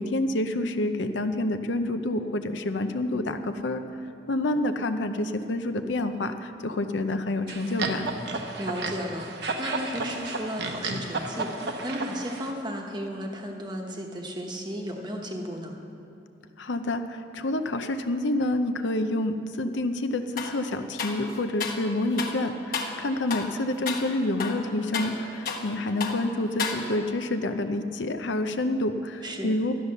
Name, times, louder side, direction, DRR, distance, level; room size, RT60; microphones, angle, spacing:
voice 1, 0.0-3.8 4.3-8.1 16.6-29.7, left 1 dB, 75° left, 8 dB, 0.6 m, -28 dB
sound 1, 7.5-12.5, right 3 dB, 60° right, 1.0 m, -32 dB
voice 2, 8.6-15.7 29.2-29.5, equal, 25° right, 1 dB, 1.1 m, -34 dB
sound 2, 20.4-20.6 21.0-21.9 22.2-22.4 22.7-23.0 23.3-23.6 23.9-24.1 24.4-25.7 26.0-26.2 26.6-27.2, left 5 dB, 45° left, 1.2 m, -32 dB
12.5 x 9.8 x 6.5 m, 2.9 s
head